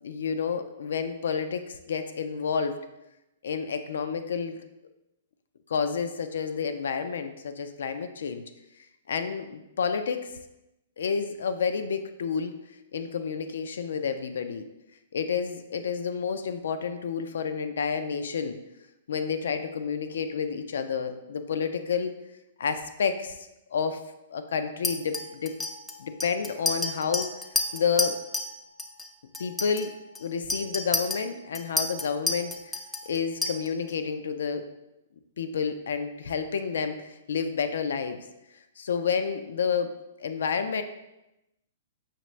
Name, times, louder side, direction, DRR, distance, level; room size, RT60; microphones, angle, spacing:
voice 1, 0.0-2.8 3.4-4.6 5.7-8.4 9.1-10.3 11.0-12.6 12.9-14.6 15.1-18.6 19.1-22.1 22.6-24.0 24.3-25.5 26.0-27.3 27.7-28.2 29.4-29.9 30.2-32.8 33.1-34.7 35.4-38.2 38.8-39.9 40.2-40.8, left 6 dB, 80° left, 8 dB, 0.4 m, -30 dB
Chink clink, 24.8-28.5 28.8-29.1 29.3-33.9, left 2 dB, 5° left, 0.3 m, -31 dB
5.6 x 2.5 x 3.1 m, 0.92 s
hypercardioid pair, 145°, 0 cm